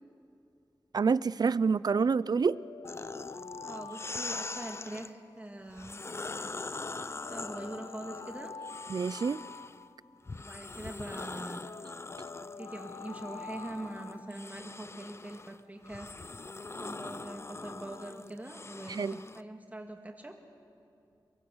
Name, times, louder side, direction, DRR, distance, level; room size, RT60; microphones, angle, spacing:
voice 1, 0.9-2.6 8.9-9.4 18.9-19.2, right 5 dB, 55° right, 19 dB, 0.4 m, -27 dB
sound 1, 2.4-5.6 6.7-10.5 11.6-14.8, left 5 dB, 80° left, 0.5 m, -48 dB
sound 2, 2.8-5.1 5.7-9.8 10.3-19.4, left 3 dB, 30° left, 0.5 m, -42 dB
voice 2, 3.7-6.0 7.3-8.5 10.4-11.7 12.4-16.1 16.8-20.4, right 1 dB, 20° right, 3 dB, 1.9 m, -43 dB
22.5 x 22.5 x 6.3 m, 2.6 s
wide cardioid pair, 75°, 8 cm